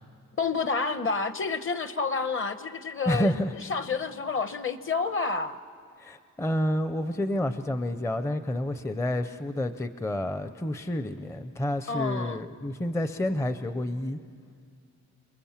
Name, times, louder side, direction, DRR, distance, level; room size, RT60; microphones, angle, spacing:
voice 1, 0.4-5.6 11.9-12.4, left 4 dB, 40° left, 11 dB, 0.9 m, -29 dB
voice 2, 3.1-3.5 6.0-14.2, left 1 dB, 10° left, 10 dB, 0.5 m, -29 dB
29.5 x 20.5 x 7.3 m, 2.3 s
wide cardioid pair, 165°, 32 cm